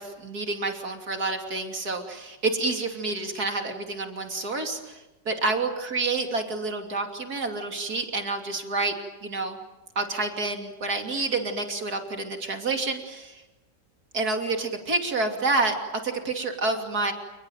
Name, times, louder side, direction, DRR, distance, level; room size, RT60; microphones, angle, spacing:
voice 1, 0.0-8.9 9.2-9.6 9.9-13.4 14.1-15.8 16.0-17.1, right 3 dB, 60° right, 4 dB, 3.4 m, -28 dB
29.5 x 20.5 x 9.2 m, 1.0 s
omnidirectional pair, 1.9 m